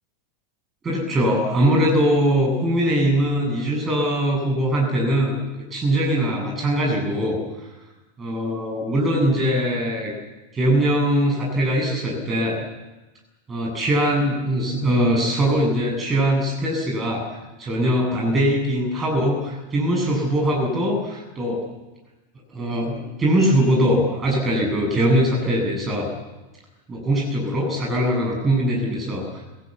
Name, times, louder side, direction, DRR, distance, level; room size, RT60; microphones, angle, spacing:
voice 1, 0.8-5.4 5.7-7.4 8.2-10.1 10.5-12.6 13.5-17.3 17.6-21.6 22.5-26.1 26.9-29.4, equal, 20° right, -1 dB, 7.5 m, -21 dB
25.5 x 17.5 x 8.5 m, 1.1 s
figure-of-eight pair, 90°, 0 cm